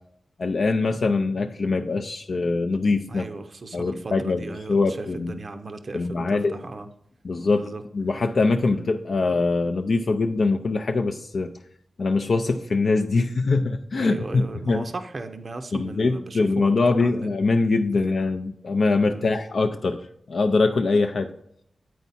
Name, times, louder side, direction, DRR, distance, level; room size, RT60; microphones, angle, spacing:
voice 1, 0.4-3.3 3.7-5.4 5.9-6.6 7.2-11.5 12.0-14.8 15.7-21.3, left 3 dB, 55° left, 5 dB, 0.4 m, -23 dB
voice 2, 3.1-6.9 7.5-7.8 8.6-8.8 13.9-17.3 17.9-18.2 19.1-19.3, right 3 dB, 40° right, 7 dB, 0.5 m, -37 dB
9.3 x 4.6 x 4.1 m, 0.73 s
wide cardioid pair, 140°, 0 cm